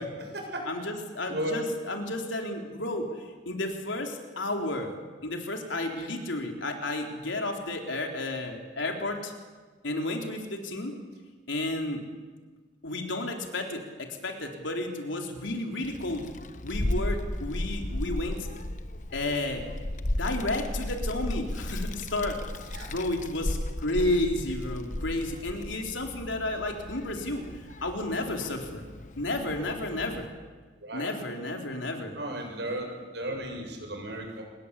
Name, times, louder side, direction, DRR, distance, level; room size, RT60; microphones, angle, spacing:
voice 1, 0.0-0.7 1.3-1.6 22.7-22.9 30.8-31.1 32.1-34.4, right 1 dB, 65° right, 2 dB, 7.5 m, -35 dB
voice 2, 0.7-4.9 5.2-9.3 9.8-10.9 11.5-12.0 12.8-16.2 16.6-18.5 19.1-19.6 20.1-22.4 22.9-27.4 27.8-28.8 29.2-30.3 30.9-32.1, left 2 dB, 85° left, 3 dB, 3.9 m, -32 dB
Child speech kid speaking, 15.8-30.3, left 1 dB, 40° left, 1.1 m, -35 dB
26.5 x 21.5 x 8.5 m, 1.4 s
head